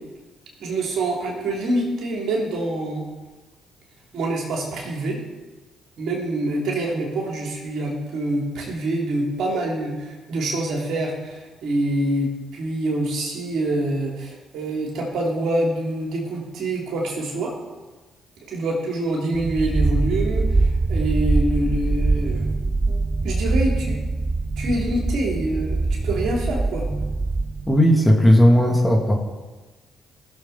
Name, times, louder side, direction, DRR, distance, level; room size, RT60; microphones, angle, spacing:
voice 1, 0.6-3.0 4.1-5.2 6.0-17.5 18.5-24.0 24.6-26.9, right 1 dB, 65° right, -1 dB, 2.9 m, -26 dB
sound 1, 19.3-27.8, right 3 dB, 30° right, 0.6 m, -23 dB
voice 2, 27.7-29.2, equal, 10° left, 0 dB, 2.7 m, -15 dB
19.0 x 6.9 x 4.1 m, 1.2 s
hypercardioid pair, 45°, 0 cm